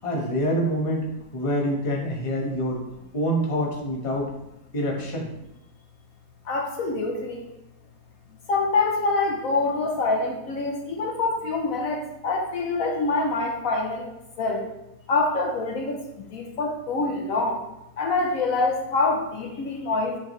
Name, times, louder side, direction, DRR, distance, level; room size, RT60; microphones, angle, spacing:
voice 1, 0.0-1.1 1.3-2.8 3.1-4.3 4.7-5.3, equal, 25° left, -1 dB, 1.0 m, -26 dB
voice 2, 6.4-7.5 8.5-14.1 14.4-14.7 15.1-17.6 18.0-20.2, left 3 dB, 70° left, 2 dB, 1.2 m, -25 dB
8.4 x 4.6 x 3.1 m, 0.89 s
omnidirectional pair, 1.6 m